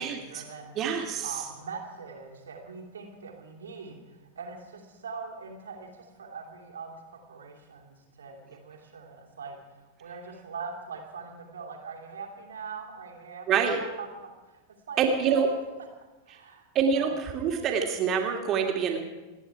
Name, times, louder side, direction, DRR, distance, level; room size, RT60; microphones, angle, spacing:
voice 1, 0.0-14.6 14.9-15.6 16.3-16.7 16.9-17.2, right 5 dB, 70° right, 2 dB, 2.9 m, -42 dB
voice 2, 0.8-1.3 13.5-13.8 15.0-15.5 16.7-19.0, right 6 dB, 30° right, 3 dB, 2.9 m, -26 dB
29.5 x 10.0 x 4.8 m, 1.2 s
figure-of-eight pair, 90°, 0 cm